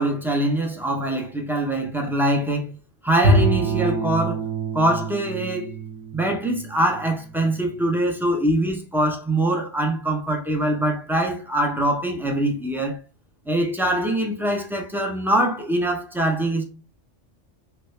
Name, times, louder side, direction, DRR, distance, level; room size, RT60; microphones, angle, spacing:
voice 1, 0.0-2.8 3.0-4.4 4.7-5.7 6.1-13.0 13.5-16.7, right 1 dB, 5° right, 0.4 m, -23 dB
Bowed string instrument, 3.2-7.5, right 2 dB, 75° right, 1.0 m, -25 dB
3.4 x 2.3 x 3.1 m
omnidirectional pair, 1.2 m